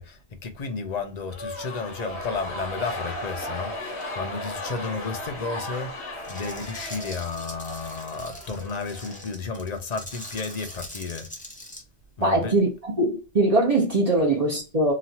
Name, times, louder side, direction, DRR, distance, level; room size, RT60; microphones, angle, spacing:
voice 1, 0.0-11.3 12.2-12.5, left 4 dB, 45° left, 0.6 m, -32 dB
sound 1, 1.3-9.7, left 1 dB, 80° left, 1.3 m, -36 dB
sound 2, 6.2-11.8, left 1 dB, 10° left, 0.6 m, -42 dB
voice 2, 12.2-14.9, right 2 dB, 40° right, 0.8 m, -22 dB
3.0 x 2.4 x 2.7 m
omnidirectional pair, 1.1 m